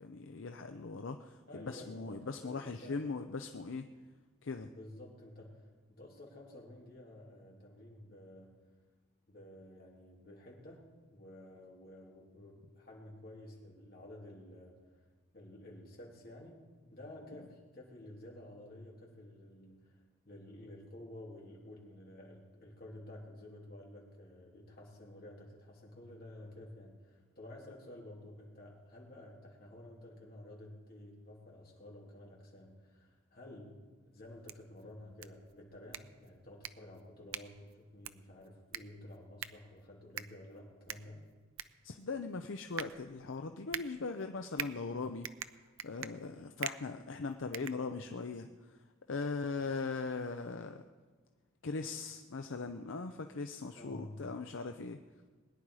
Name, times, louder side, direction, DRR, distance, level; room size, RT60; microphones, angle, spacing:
voice 1, 0.0-3.8 4.4-4.7 41.8-45.3 45.8-48.8 49.1-50.8 51.6-55.0, left 4 dB, 70° left, 6 dB, 0.6 m, -40 dB
voice 2, 1.5-3.0 4.7-8.6 9.3-10.8 11.1-14.8 15.3-33.8 34.1-41.2 53.7-54.2, left 1 dB, 45° left, -3 dB, 3.1 m, -52 dB
sound 1, 34.2-48.4, right 10 dB, 80° right, 0.6 m, -46 dB
21.5 x 10.0 x 4.8 m, 1.4 s
head